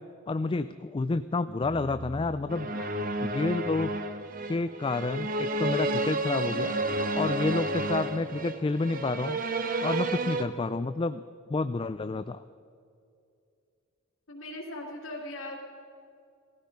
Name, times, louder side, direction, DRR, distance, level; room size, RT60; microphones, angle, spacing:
voice 1, 0.3-2.7 3.3-3.9 4.5-6.8 7.1-9.4 9.8-11.2 11.5-12.4, left 3 dB, 25° left, 12 dB, 0.3 m, -29 dB
sound 1, 1.6-4.9, right 1 dB, 15° right, 2.9 m, -46 dB
sound 2, 2.5-10.4, right 2 dB, 45° right, 1.0 m, -31 dB
voice 2, 2.7-3.1 14.3-15.6, left 1 dB, 85° left, -5 dB, 2.8 m, -40 dB
18.5 x 14.5 x 5.3 m, 2.4 s
head